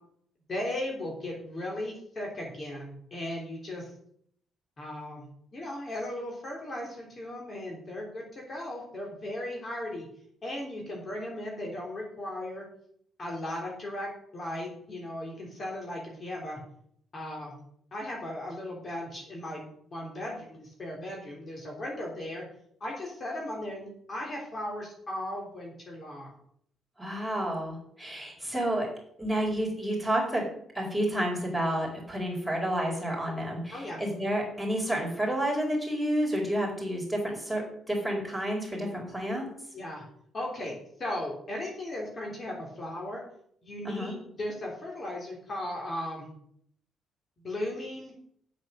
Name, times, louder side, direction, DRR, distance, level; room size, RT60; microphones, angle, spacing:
voice 1, 0.5-3.9 4.8-10.1 10.4-12.6 13.2-16.6 17.1-17.6 17.9-22.4 22.8-26.3 32.3-32.5 33.7-34.0 39.7-40.1 40.3-40.7 41.0-43.2 43.6-46.3 47.4-48.1, left 1 dB, 40° left, -1 dB, 3.5 m, -37 dB
voice 2, 27.0-28.9 29.2-30.4 30.7-39.5 43.8-44.1, right 1 dB, 5° left, 0 dB, 4.4 m, -30 dB
8.6 x 8.0 x 6.4 m, 0.67 s
cardioid pair, 90°, 0 cm